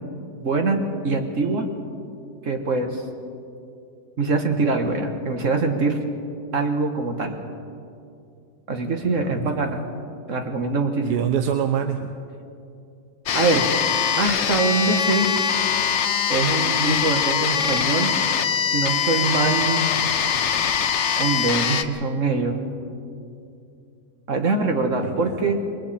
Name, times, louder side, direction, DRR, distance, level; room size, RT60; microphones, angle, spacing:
voice 1, 0.4-0.8 1.0-1.7 2.4-3.0 4.2-6.0 6.5-7.4 8.7-9.8 10.3-11.3 13.3-13.7 14.2-15.3 16.3-18.1 18.7-19.9 21.2-22.6 24.3-25.6, right 3 dB, 50° right, 4 dB, 1.8 m, -23 dB
voice 2, 9.0-9.7 11.0-12.1 25.0-25.6, right 8 dB, 75° right, 7 dB, 1.3 m, -27 dB
sound 1, 13.3-21.8, left 7 dB, 55° left, 0.9 m, -22 dB
28.0 x 21.5 x 4.3 m, 2.6 s
omnidirectional pair, 1.8 m